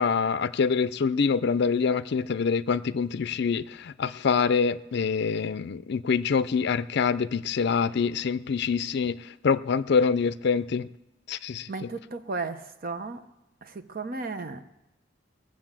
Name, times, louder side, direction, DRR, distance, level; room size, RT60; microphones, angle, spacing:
voice 1, 0.0-10.9 11.3-11.9, left 5 dB, 60° left, 16 dB, 0.5 m, -25 dB
voice 2, 11.7-13.2 13.6-14.6, right 3 dB, 50° right, 8 dB, 0.9 m, -34 dB
21.0 x 7.6 x 7.5 m, 0.96 s
head